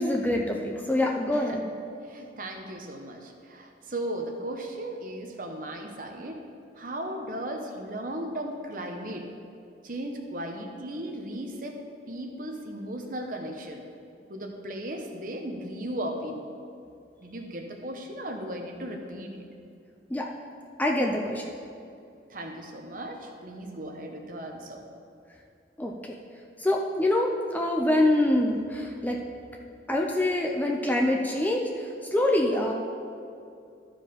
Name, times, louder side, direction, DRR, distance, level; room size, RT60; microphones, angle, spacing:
voice 1, 0.0-1.6 20.1-20.3 20.8-21.5 25.8-25.9 26.6-29.2 29.9-32.7, left 1 dB, 10° left, 0 dB, 0.5 m, -25 dB
voice 2, 2.0-6.4 6.8-9.3 9.8-11.8 12.1-13.8 14.3-16.5 17.2-19.4 22.3-24.8, right 1 dB, 45° right, 3 dB, 0.9 m, -36 dB
13.0 x 4.9 x 5.1 m, 2.6 s
head